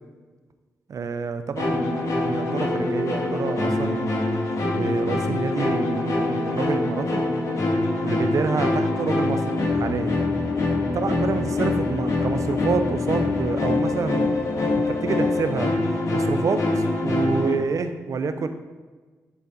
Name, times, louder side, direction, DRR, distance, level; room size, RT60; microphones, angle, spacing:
voice 1, 0.9-4.4 4.7-7.2 8.0-10.1 10.9-14.3 14.9-15.7 16.1-18.5, right 5 dB, 60° right, 9 dB, 0.6 m, -28 dB
sound 1, 1.6-17.5, left 2 dB, 60° left, 1.8 m, -24 dB
9.9 x 4.2 x 4.0 m, 1.3 s
cardioid pair, 60°, 6 cm